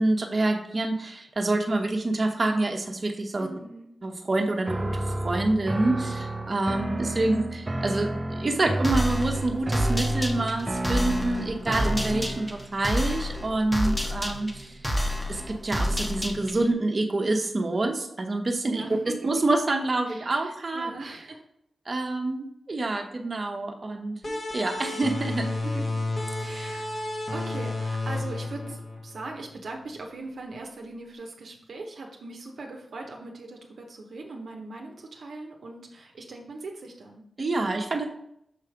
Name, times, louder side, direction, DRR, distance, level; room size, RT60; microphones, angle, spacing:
voice 1, 0.0-3.5 4.0-14.7 15.3-19.0 19.2-20.9 21.9-24.2 24.5-25.5 37.4-38.1, right 2 dB, 50° right, 2 dB, 1.1 m, -27 dB
voice 2, 3.4-3.9 12.0-12.3 18.6-19.3 20.1-21.4 24.2-24.4 25.6-25.8 26.4-37.2, right 2 dB, 75° right, 1 dB, 0.9 m, -40 dB
sound 1, 4.7-12.7, right 1 dB, 30° right, 0.8 m, -31 dB
sound 2, 8.8-16.7, equal, 15° left, 1.2 m, -29 dB
sound 3, 24.2-29.5, left 2 dB, 55° left, 1.4 m, -31 dB
6.8 x 3.2 x 5.0 m, 0.75 s
cardioid pair, 45°, 0 cm